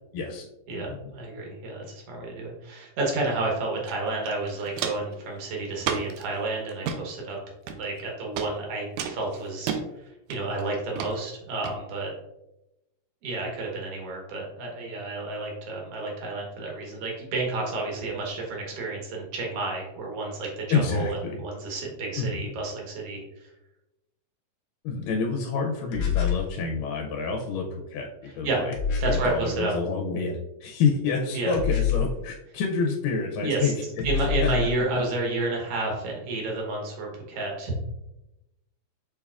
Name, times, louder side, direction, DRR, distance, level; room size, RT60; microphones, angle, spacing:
voice 1, 0.1-0.5 0.7-1.1 20.7-21.4 22.2-22.5 24.8-28.8 29.1-34.1 34.4-34.7 34.9-35.0, left 4 dB, 85° left, 1 dB, 2.2 m, -28 dB
voice 2, 0.7-7.4 7.8-9.8 10.3-12.1 13.2-23.5 28.4-28.6 29.0-29.7 31.3-31.6 33.4-33.7 34.0-37.7, right 2 dB, 60° right, -1 dB, 1.7 m, -30 dB
Walk footsteps, 3.9-4.0 4.2-5.1 5.8-6.2 6.7-7.0 7.7-8.0 8.4-8.5 9.0-9.8 10.3-10.6 11.0-11.1 11.6-11.7, right 7 dB, 85° right, 1.7 m, -31 dB
sound 1, 25.9-26.5 28.7-29.3 31.5-32.2 34.0-34.7, left 7 dB, 70° left, 1.9 m, -26 dB
6.5 x 3.4 x 2.3 m, 0.91 s
omnidirectional pair, 3.8 m